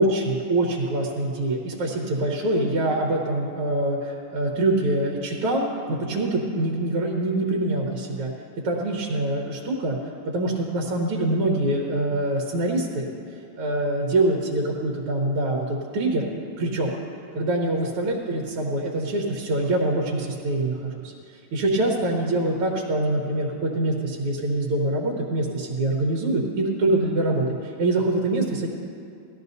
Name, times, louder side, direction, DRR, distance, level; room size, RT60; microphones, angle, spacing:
voice 1, 0.0-5.7 6.1-8.3 8.6-10.0 10.3-13.1 13.6-16.3 16.6-16.9 17.4-21.1 21.5-28.7, right 2 dB, 85° right, -1 dB, 2.1 m, -24 dB
18.0 x 12.5 x 2.7 m, 2.4 s
omnidirectional pair, 2.4 m